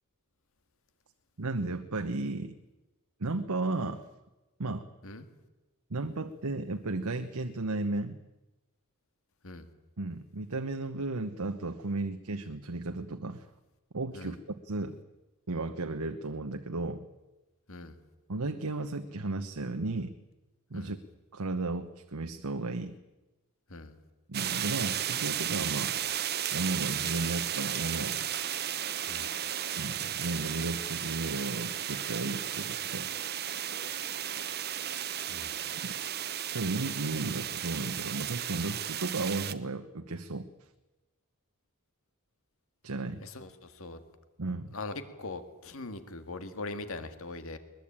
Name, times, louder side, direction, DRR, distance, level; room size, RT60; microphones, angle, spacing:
voice 1, 1.4-2.5 3.2-4.0 4.6-4.9 5.9-8.2 10.0-13.5 13.9-15.0 15.5-17.1 18.3-20.1 20.7-21.0 21.3-23.0 24.3-26.0 26.5-28.3 29.8-33.1 35.8-35.9 36.5-40.5 42.8-43.2 44.4-44.7, right 2 dB, 85° right, 7 dB, 1.1 m, -34 dB
sound 1, 24.3-39.5, right 10 dB, 45° right, 1.1 m, -34 dB
voice 2, 43.2-44.0 44.7-47.6, left 2 dB, 65° left, 9 dB, 2.0 m, -41 dB
21.5 x 21.0 x 8.8 m, 1.1 s
head